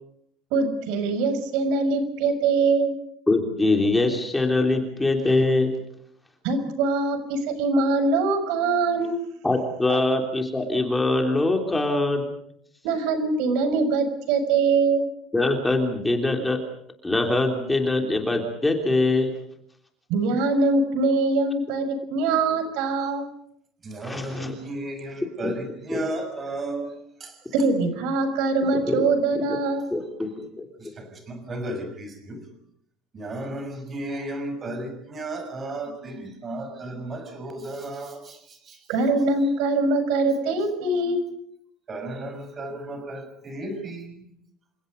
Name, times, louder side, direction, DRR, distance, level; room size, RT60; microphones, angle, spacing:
voice 1, 0.5-2.9 6.4-9.1 9.9-10.0 12.8-15.0 20.1-23.3 27.5-29.9 38.9-41.2, right 3 dB, 65° right, 10 dB, 6.1 m, -23 dB
voice 2, 3.3-5.7 9.4-12.3 15.3-16.6 17.0-19.3 24.0-24.5 25.4-25.5 25.9-26.0 28.9-29.1 29.5-29.6 29.9-30.6, left 2 dB, 5° left, 3 dB, 3.2 m, -23 dB
voice 3, 23.8-27.5 30.2-30.3 30.8-32.5 33.1-38.9 41.9-44.3, right 1 dB, 20° right, 8 dB, 6.3 m, -34 dB
29.0 x 27.0 x 5.3 m, 0.69 s
cardioid pair, 165°, 0 cm